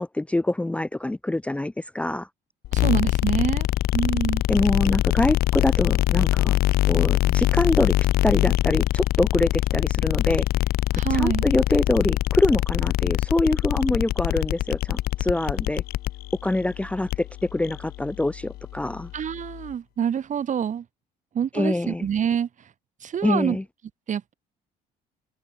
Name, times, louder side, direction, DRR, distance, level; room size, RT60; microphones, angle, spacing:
voice 1, 0.0-2.3 4.5-6.6 6.9-7.9 8.2-10.5 11.1-15.8 16.4-19.1 21.5-22.1 23.2-23.6, left 2 dB, 5° left, 0.7 m, -24 dB
sound 1, 2.6-19.7, left 15 dB, 65° left, 0.5 m, -24 dB
voice 2, 2.7-3.7 3.9-4.4 10.9-11.5 19.1-20.8 21.3-22.5 23.0-23.6 24.1-24.3, right 8 dB, 45° right, 6.3 m, -26 dB
open air
cardioid pair, 110°, 17 cm